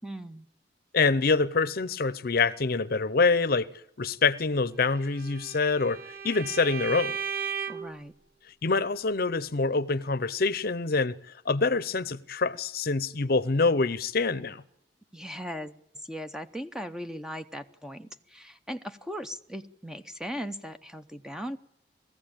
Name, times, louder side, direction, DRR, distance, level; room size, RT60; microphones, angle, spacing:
voice 1, 0.0-0.5 7.7-8.1 15.1-21.6, equal, 5° right, 0.7 m, -38 dB
voice 2, 0.9-3.7 4.0-7.2 8.6-11.2 11.5-14.6, left 4 dB, 55° left, 0.8 m, -25 dB
Bowed string instrument, 4.9-8.0, right 6 dB, 55° right, 1.0 m, -35 dB
19.5 x 15.0 x 8.8 m
head